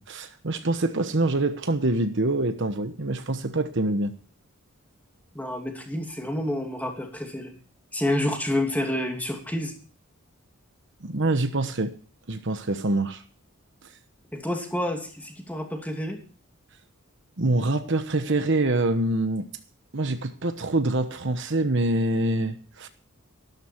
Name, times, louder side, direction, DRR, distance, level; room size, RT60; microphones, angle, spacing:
voice 1, 0.0-4.1 11.0-11.9 12.3-13.2 17.4-19.5 19.9-22.9, right 2 dB, 55° right, 1.1 m, -25 dB
voice 2, 5.3-7.5 7.9-9.7 14.3-16.2, left 1 dB, 5° left, 2.7 m, -29 dB
13.5 x 13.0 x 4.6 m
head